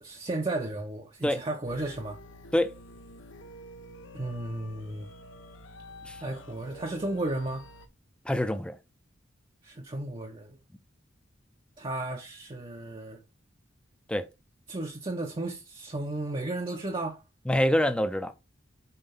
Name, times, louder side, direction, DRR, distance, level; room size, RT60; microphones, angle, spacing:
voice 1, 0.0-2.2 4.1-5.1 6.2-7.7 9.6-10.6 11.8-13.2 14.7-17.2, right 2 dB, 30° right, 0.7 m, -34 dB
sound 1, 1.7-7.9, equal, 75° left, 0.9 m, -48 dB
voice 2, 8.3-8.8 14.1-14.2 17.5-18.3, left 1 dB, 5° left, 0.6 m, -25 dB
5.8 x 3.9 x 5.3 m
head